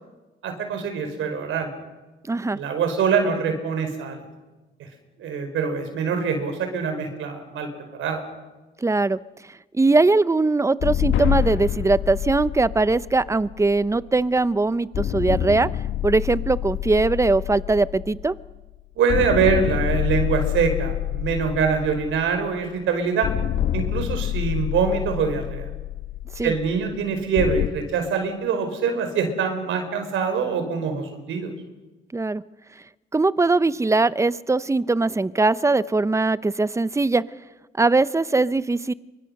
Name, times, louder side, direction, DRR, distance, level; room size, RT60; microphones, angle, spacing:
voice 1, 0.4-1.7 2.5-4.2 5.2-7.7 7.9-8.2 19.0-23.3 23.7-25.6 26.4-31.5, right 5 dB, 80° right, 6 dB, 4.9 m, -24 dB
voice 2, 2.3-2.6 8.8-9.2 9.7-15.7 16.0-18.4 26.4-26.5 32.1-32.4 33.1-37.2 37.8-38.9, right 3 dB, 15° right, 17 dB, 0.7 m, -21 dB
sound 1, 10.8-14.4 14.9-18.7 19.1-22.7 23.2-27.7, left 11 dB, 70° left, 1.4 m, -27 dB
27.0 x 24.5 x 6.6 m, 1.2 s
cardioid pair, 90°, 20 cm